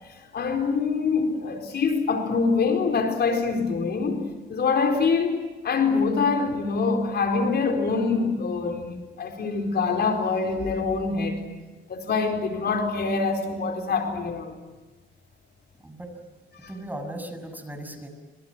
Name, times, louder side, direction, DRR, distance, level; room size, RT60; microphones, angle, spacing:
voice 1, 0.3-11.4 11.9-14.5 16.6-16.7, left 4 dB, 55° left, 4 dB, 4.4 m, -25 dB
voice 2, 15.8-16.1 16.7-18.1, right 1 dB, 10° right, 6 dB, 6.8 m, -37 dB
29.0 x 26.5 x 6.2 m, 1.3 s
cardioid pair, 90°, 20 cm